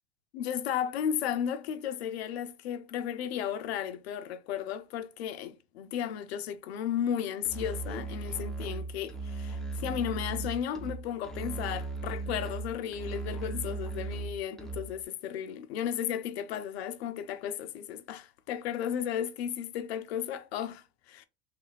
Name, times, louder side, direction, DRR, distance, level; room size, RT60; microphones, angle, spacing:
voice 1, 0.3-21.3, left 9 dB, 85° left, 0.5 m, -34 dB
Musical instrument, 7.4-15.0, right 3 dB, ahead, 0.6 m, -37 dB
3.1 x 2.4 x 3.0 m
supercardioid pair, 105°, 31 cm